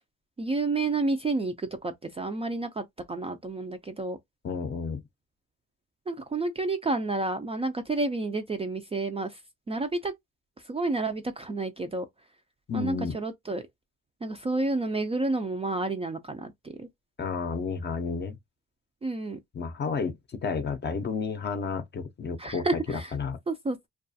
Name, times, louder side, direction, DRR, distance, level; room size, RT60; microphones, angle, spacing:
voice 1, 0.4-4.2 6.1-9.4 9.7-10.1 10.6-12.1 12.7-13.6 14.2-16.9 19.0-19.4 22.4-23.1 23.5-23.9, right 3 dB, 20° right, 0.3 m, -30 dB
voice 2, 4.4-5.0 12.7-13.2 17.2-18.4 19.5-22.7 23.1-23.4, left 5 dB, 35° left, 0.6 m, -31 dB
2.3 x 2.2 x 2.6 m
cardioid pair, 90°, 30 cm